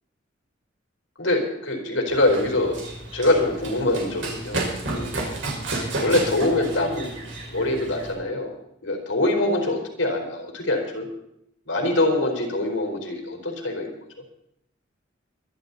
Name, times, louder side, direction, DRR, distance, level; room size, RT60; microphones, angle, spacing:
voice 1, 1.2-2.8 3.1-5.1 6.0-7.1 7.5-8.6 8.8-11.1 11.7-14.0, left 2 dB, 90° left, 2 dB, 4.3 m, -24 dB
Run, 2.1-8.1, right 2 dB, 75° right, 5.1 m, -32 dB
24.0 x 11.0 x 4.1 m, 0.77 s
head